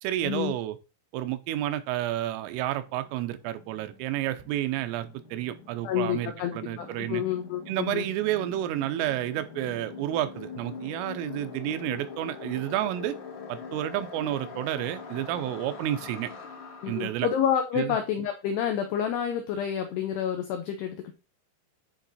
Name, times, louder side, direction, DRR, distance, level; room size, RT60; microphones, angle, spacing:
voice 1, 0.0-0.8 1.1-7.2 7.7-13.2 13.5-16.3 16.9-17.3 17.8-18.0, right 13 dB, 85° right, 11 dB, 3.2 m, -30 dB
sound 1, 1.9-17.1, left 5 dB, 70° left, 1.8 m, -44 dB
voice 2, 5.8-8.1 16.8-21.1, left 9 dB, 90° left, 5 dB, 2.3 m, -29 dB
10.0 x 3.7 x 4.1 m, 0.30 s
omnidirectional pair, 5.8 m